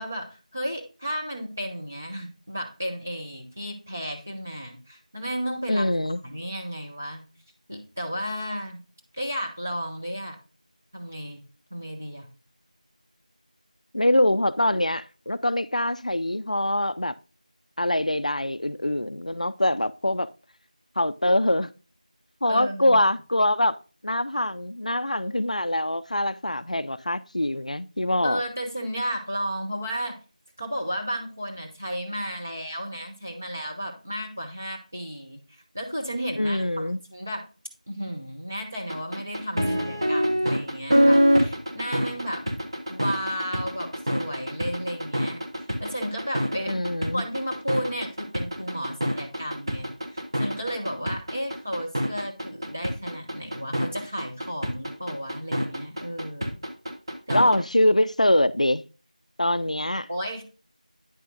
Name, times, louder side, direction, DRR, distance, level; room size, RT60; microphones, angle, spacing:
voice 1, 0.0-5.9 6.2-7.3 7.7-8.8 9.1-10.4 10.9-11.4 11.7-12.3 22.4-23.1 28.2-30.2 30.6-37.4 37.9-42.4 42.9-45.4 45.8-46.7 47.1-56.6 57.3-57.5 60.1-60.4, equal, 15° right, 0.7 m, -33 dB
voice 2, 5.7-6.2 13.9-17.1 17.8-20.3 21.0-21.7 22.4-23.8 24.0-28.4 36.4-37.0 46.7-47.2 57.3-58.8 59.4-60.1, left 1 dB, 60° left, 0.5 m, -24 dB
sound 1, 38.9-57.6, equal, 40° right, 1.2 m, -25 dB
9.2 x 5.8 x 2.4 m
figure-of-eight pair, 180°, 4 cm